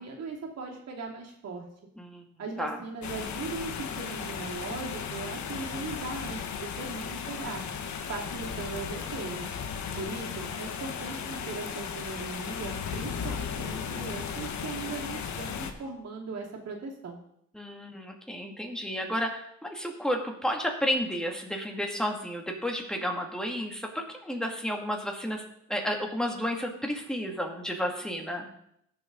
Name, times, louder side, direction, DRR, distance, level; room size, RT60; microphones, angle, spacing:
voice 1, 0.0-1.7 2.4-7.6 8.1-9.5 10.0-17.2, right 4 dB, 55° right, -1 dB, 2.8 m, -39 dB
sound 1, 3.0-15.7, left 7 dB, 70° left, 1.3 m, -36 dB
voice 2, 17.5-25.4 25.7-28.5, equal, ahead, 1 dB, 2.4 m, -32 dB
16.5 x 7.0 x 4.0 m, 0.75 s
cardioid pair, 90°, 30 cm